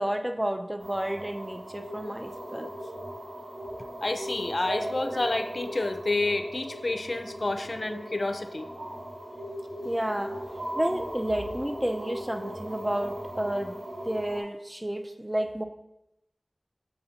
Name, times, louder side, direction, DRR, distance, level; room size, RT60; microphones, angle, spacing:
voice 1, 0.0-2.7 9.8-10.3 10.8-13.8 14.0-15.6, right 1 dB, 20° right, 7 dB, 0.5 m, -31 dB
sound 1, 0.8-14.4, equal, 75° right, 1.3 m, -38 dB
voice 2, 4.0-8.7, left 2 dB, 70° left, 7 dB, 0.4 m, -29 dB
6.6 x 5.5 x 2.8 m, 0.86 s
wide cardioid pair, 40°, 0 cm